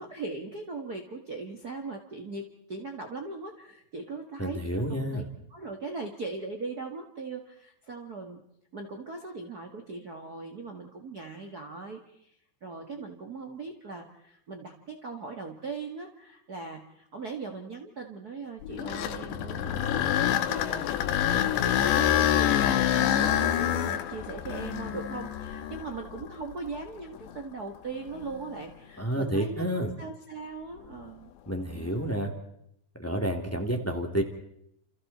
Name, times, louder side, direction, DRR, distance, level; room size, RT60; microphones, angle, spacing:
voice 1, 0.0-5.2 5.5-8.4 8.7-12.3 12.6-31.3, right 3 dB, 55° right, 3 dB, 1.0 m, -39 dB
voice 2, 4.4-5.2 29.0-29.9 31.5-32.3 33.0-34.2, right 1 dB, 5° left, 4 dB, 1.9 m, -29 dB
sound 1, 18.6-26.7 27.3-27.4 28.1-28.2 31.8-32.1, left 11 dB, 85° left, 3.5 m, -27 dB
30.0 x 29.0 x 4.3 m, 0.75 s
omnidirectional pair, 4.9 m